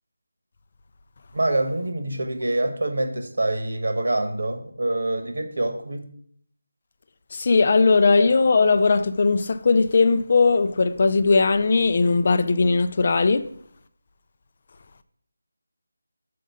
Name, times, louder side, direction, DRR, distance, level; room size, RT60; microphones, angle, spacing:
voice 1, 1.3-6.0, right 2 dB, 75° right, 1.3 m, -25 dB
voice 2, 7.3-13.5, left 4 dB, 35° left, 0.4 m, -19 dB
6.6 x 5.0 x 5.4 m
figure-of-eight pair, 175°, 0 cm